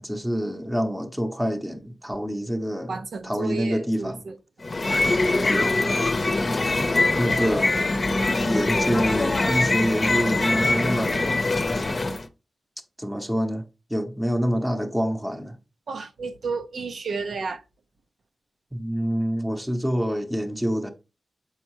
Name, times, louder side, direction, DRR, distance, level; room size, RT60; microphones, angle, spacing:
voice 1, 0.0-2.9 3.2-4.2 5.4-5.8 7.1-7.9 8.4-11.5 13.0-13.6 13.9-15.6 18.7-20.9, equal, 5° right, 0.8 m, -26 dB
voice 2, 2.9-4.4 15.9-17.6, right 4 dB, 75° right, 0.7 m, -32 dB
sound 1, 4.6-12.3, left 2 dB, 40° left, 0.7 m, -23 dB
7.1 x 4.5 x 3.0 m
wide cardioid pair, 90°, 0 cm